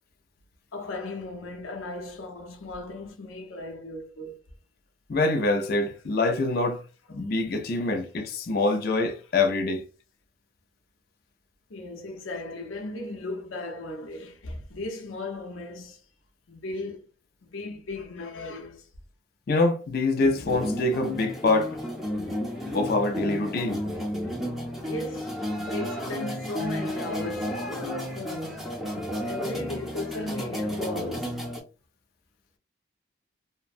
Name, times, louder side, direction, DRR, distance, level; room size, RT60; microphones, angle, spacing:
voice 1, 0.7-4.4 11.7-16.0 16.5-17.1 17.4-18.9 24.8-28.8 29.2-31.4, left 2 dB, 85° left, 0.7 m, -36 dB
voice 2, 5.1-6.8 7.1-9.8 19.5-21.8 22.7-23.8, left 2 dB, 50° left, 0.4 m, -25 dB
sound 1, 20.4-31.6, left 1 dB, ahead, 0.6 m, -32 dB
2.8 x 2.1 x 2.4 m
head